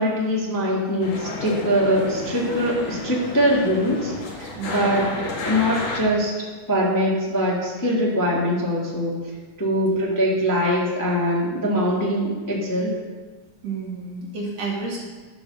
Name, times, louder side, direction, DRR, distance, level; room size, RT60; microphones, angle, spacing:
voice 1, 0.0-6.3 6.7-9.2 9.6-13.0, equal, 10° left, -5 dB, 1.5 m, -22 dB
sound 1, 1.0-6.0, left 2 dB, 60° left, 2.4 m, -31 dB
voice 2, 4.6-5.0 9.9-10.2 13.6-15.0, right 4 dB, 55° right, -4 dB, 3.4 m, -31 dB
12.5 x 6.2 x 6.7 m, 1.3 s
omnidirectional pair, 3.6 m